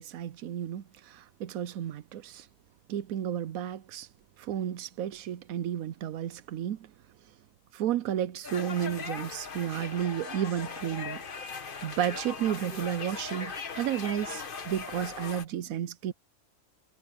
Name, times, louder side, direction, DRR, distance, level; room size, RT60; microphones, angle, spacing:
voice 1, 0.0-2.5 2.9-4.1 4.4-6.9 7.7-11.2 11.8-16.1, right 10 dB, 90° right, 1.1 m, -32 dB
sound 1, 8.4-15.4, left 5 dB, 40° left, 1.3 m, -39 dB
omnidirectional pair, 1.4 m